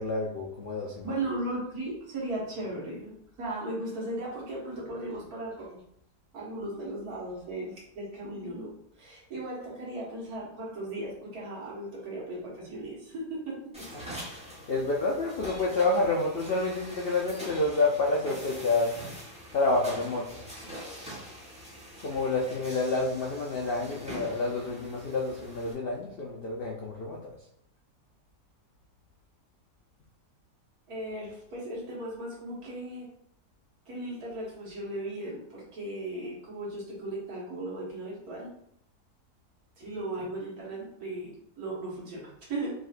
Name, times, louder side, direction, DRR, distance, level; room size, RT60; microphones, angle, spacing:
voice 1, 0.0-1.1 13.9-18.9 19.5-20.4 22.0-27.3, left 2 dB, 70° left, -2 dB, 0.5 m, -29 dB
voice 2, 1.0-5.8 6.3-8.7 9.0-13.9 30.9-33.1 33.9-38.5 39.8-42.7, right 1 dB, 65° right, -5 dB, 1.9 m, -37 dB
sound 1, 13.7-25.7, equal, 5° right, 1.0 m, -44 dB
4.9 x 3.5 x 2.5 m, 0.71 s
omnidirectional pair, 1.8 m